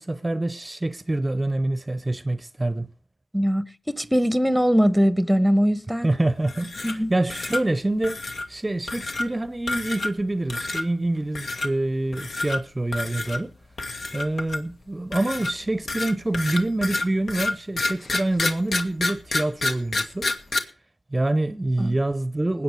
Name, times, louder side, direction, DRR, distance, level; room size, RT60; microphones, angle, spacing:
voice 1, 0.0-2.9 6.0-13.5 14.1-20.3 21.1-22.6, right 2 dB, 25° right, 0.7 m, -26 dB
voice 2, 3.3-6.1 6.8-7.1 21.8-21.9, equal, ahead, 1.0 m, -21 dB
sound 1, 6.4-7.0 7.3-7.6 8.0-8.5 8.9-9.3 9.7-10.2 10.5-10.8 11.3-11.7 12.1-12.6 12.9-13.4 13.8-14.7 15.1-20.6, left 2 dB, 75° left, 1.8 m, -28 dB
20.0 x 8.8 x 4.8 m
cardioid pair, 60°, 0 cm